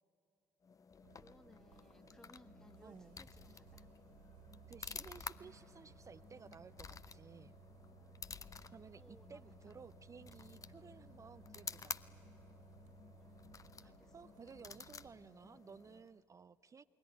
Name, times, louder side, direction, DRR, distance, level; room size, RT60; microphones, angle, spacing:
sound 1, 0.6-16.2, left 6 dB, 35° left, 0.7 m, -52 dB
Bus, 1.0-15.1, right 5 dB, 80° right, 3.8 m, -61 dB
voice 1, 1.2-3.9 8.9-9.9 13.2-14.1, left 1 dB, 5° left, 11 dB, 1.2 m, -65 dB
voice 2, 2.8-3.3 4.7-7.6 8.7-12.0 13.8-16.8, right 5 dB, 35° right, 13 dB, 0.5 m, -56 dB
28.0 x 21.0 x 9.5 m, 2.7 s
figure-of-eight pair, 45°, 10 cm